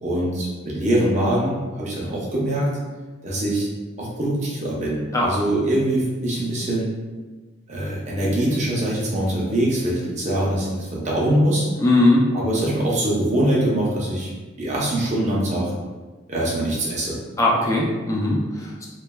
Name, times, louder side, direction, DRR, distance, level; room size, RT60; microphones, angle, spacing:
voice 1, 0.0-2.7 3.2-3.7 4.0-6.9 7.7-11.7 12.3-14.3 14.6-15.7 16.3-17.2, right 1 dB, 35° right, -5 dB, 0.6 m, -23 dB
voice 2, 11.8-12.3 17.4-18.9, left 2 dB, 15° left, -2 dB, 0.3 m, -19 dB
3.1 x 2.1 x 2.2 m, 1.3 s
head